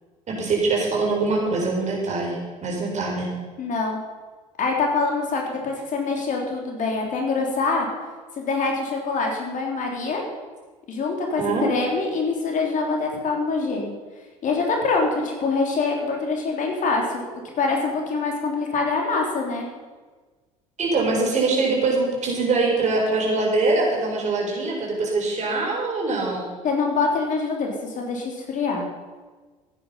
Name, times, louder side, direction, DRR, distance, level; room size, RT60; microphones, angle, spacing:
voice 1, 0.3-3.3 11.4-11.7 20.8-26.5, right 3 dB, 45° right, -1 dB, 4.8 m, -23 dB
voice 2, 3.6-4.0 4.6-7.9 8.4-10.2 10.9-14.0 14.4-19.7 26.6-28.8, left 4 dB, 45° left, 1 dB, 3.5 m, -25 dB
15.5 x 9.4 x 5.6 m, 1.4 s
hypercardioid pair, 60°, 17 cm